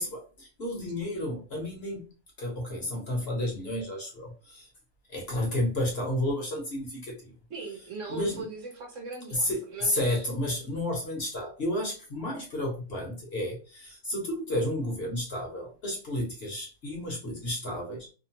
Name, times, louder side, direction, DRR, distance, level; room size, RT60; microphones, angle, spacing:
voice 1, 0.0-2.0 2.4-4.7 5.1-7.2 8.1-8.4 9.3-18.1, left 1 dB, 50° left, -1 dB, 0.9 m, -31 dB
voice 2, 7.5-10.3, right 4 dB, 60° right, 2 dB, 1.0 m, -40 dB
2.8 x 2.1 x 2.8 m, 0.34 s
omnidirectional pair, 1.6 m